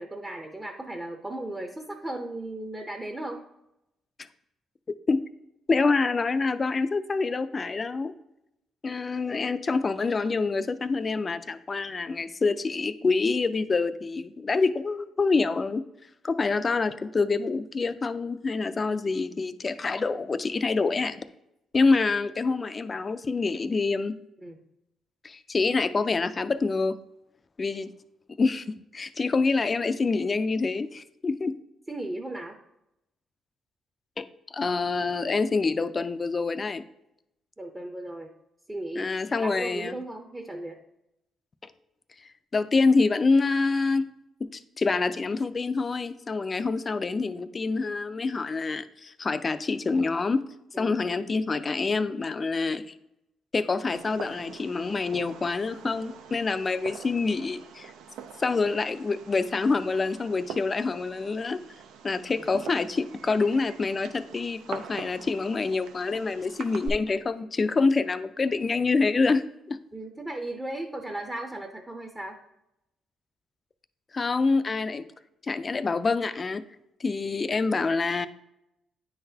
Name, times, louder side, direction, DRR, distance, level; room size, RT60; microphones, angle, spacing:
voice 1, 0.0-3.4 24.4-24.6 31.9-32.6 37.6-38.3 38.7-39.1 39.4-40.8 50.7-50.9 52.7-52.8 69.9-72.4, right 1 dB, 15° right, 3 dB, 0.6 m, -36 dB
voice 2, 5.7-8.1 8.8-15.8 16.2-21.2 21.7-24.1 25.2-26.9 27.6-27.9 28.4-28.7 28.9-31.5 34.2-34.3 34.5-36.8 39.0-39.9 41.6-41.7 42.5-44.1 44.4-50.4 50.8-52.9 53.5-57.9 58.4-61.6 62.0-69.8 74.1-75.1 75.4-76.6 77.0-78.3, left 4 dB, 35° left, 12 dB, 0.4 m, -26 dB
Fireworks, 53.9-66.9, right 6 dB, 90° right, 0.5 m, -44 dB
9.3 x 3.9 x 2.7 m, 0.85 s
cardioid pair, 90°, 0 cm